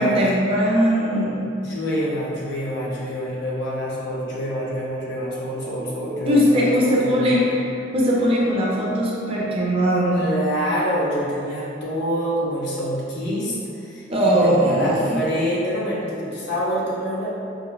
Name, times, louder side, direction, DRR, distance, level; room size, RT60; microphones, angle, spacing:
voice 1, 0.0-1.4 6.2-10.2 14.1-15.2, equal, 30° right, -5 dB, 0.4 m, -20 dB
voice 2, 1.5-7.5 10.1-14.0 14.4-17.4, equal, 60° left, -6 dB, 0.6 m, -26 dB
4.0 x 2.0 x 2.2 m, 2.6 s
head